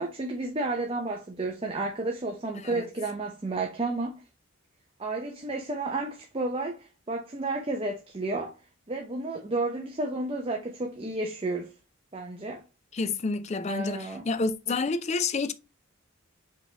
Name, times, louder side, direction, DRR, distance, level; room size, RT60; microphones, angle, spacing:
voice 1, 0.0-4.2 5.0-8.6 8.9-11.7 12.1-12.6 13.7-14.2, right 2 dB, 25° right, 0.6 m, -32 dB
voice 2, 12.9-15.5, left 3 dB, 30° left, 0.4 m, -29 dB
5.1 x 3.4 x 2.8 m
head